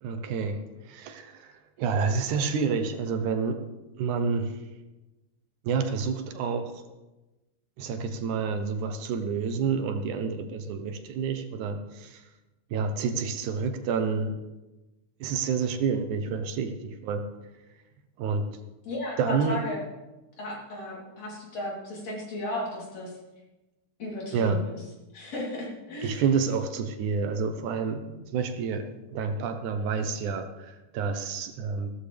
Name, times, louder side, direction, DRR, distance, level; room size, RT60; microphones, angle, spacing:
voice 1, 0.0-1.5 1.8-3.6 4.0-4.6 5.6-6.8 7.8-12.2 12.7-14.4 15.2-17.3 18.2-18.5 19.2-19.6 24.3-24.6 26.0-31.9, right 5 dB, 75° right, 7 dB, 2.4 m, -29 dB
voice 2, 18.9-19.8 20.4-23.1 24.0-24.8 25.1-26.2, left 1 dB, 60° left, -4 dB, 4.5 m, -35 dB
15.5 x 13.0 x 3.4 m, 1.1 s
omnidirectional pair, 3.5 m